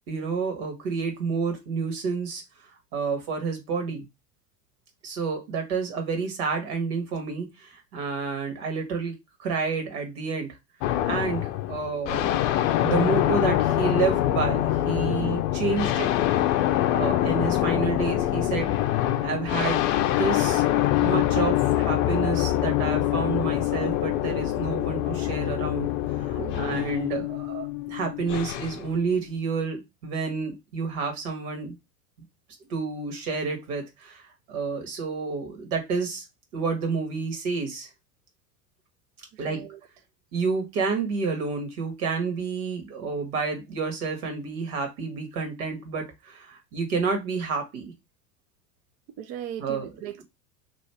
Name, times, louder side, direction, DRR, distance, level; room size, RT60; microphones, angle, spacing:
voice 1, 0.1-2.4 2.9-4.1 5.0-9.1 9.4-10.5 11.0-12.4 12.8-16.1 16.9-20.6 21.0-31.7 32.7-34.2 34.5-36.2 36.5-37.9 39.4-39.6 40.3-47.9 49.6-49.9, right 4 dB, 60° right, 1.7 m, -29 dB
sound 1, 10.8-28.9, left 13 dB, 45° left, 0.6 m, -25 dB
voice 2, 15.1-15.4 26.4-26.8 39.3-39.8 49.2-50.2, right 10 dB, 35° right, 0.4 m, -38 dB
3.1 x 2.6 x 4.4 m
figure-of-eight pair, 85°, 50 cm